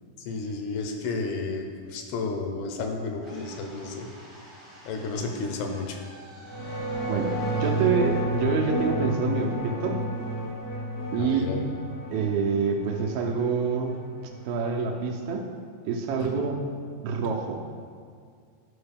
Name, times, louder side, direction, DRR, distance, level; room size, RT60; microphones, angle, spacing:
voice 1, 0.2-4.1 4.9-6.0 6.6-6.7 11.1-11.6 16.2-16.5, left 3 dB, 85° left, 3 dB, 2.7 m, -32 dB
sound 1, 3.2-9.3, right 1 dB, 40° right, 0.4 m, -49 dB
sound 2, 6.4-15.1, equal, 65° left, 0.9 m, -31 dB
voice 2, 7.0-10.0 11.1-11.7 12.1-14.0 14.5-15.5 15.9-16.6 17.0-17.6, right 5 dB, 80° right, 1 dB, 2.3 m, -27 dB
11.0 x 4.8 x 3.4 m, 2.1 s
omnidirectional pair, 4.5 m